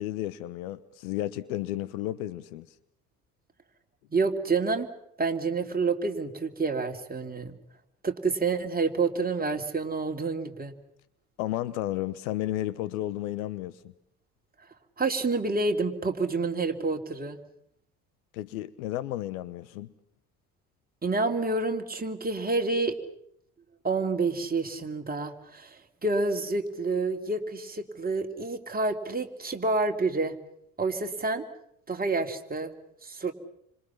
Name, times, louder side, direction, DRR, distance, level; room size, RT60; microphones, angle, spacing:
voice 1, 0.0-2.7 11.4-13.8 18.3-19.9, left 14 dB, 70° left, 1.2 m, -32 dB
voice 2, 4.1-4.9 5.2-7.6 8.0-10.7 15.0-17.4 21.0-23.0 23.8-30.4 30.8-31.4 31.9-32.7 33.0-33.3, right 3 dB, 20° right, 3.1 m, -28 dB
28.5 x 26.0 x 5.8 m
figure-of-eight pair, 55°, 44 cm